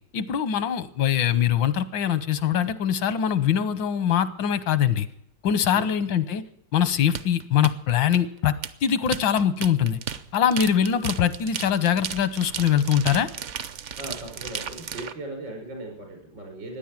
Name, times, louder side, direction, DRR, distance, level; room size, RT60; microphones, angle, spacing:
voice 1, 0.1-5.1 5.4-6.4 6.7-8.5 8.8-10.0 10.3-13.3, left 9 dB, 85° left, 13 dB, 1.7 m, -23 dB
sound 1, 7.1-15.1, right 7 dB, 55° right, 0.8 m, -34 dB
voice 2, 14.0-16.8, right 2 dB, 80° right, 1 dB, 6.0 m, -38 dB
15.5 x 10.0 x 9.0 m, 0.73 s
omnidirectional pair, 2.0 m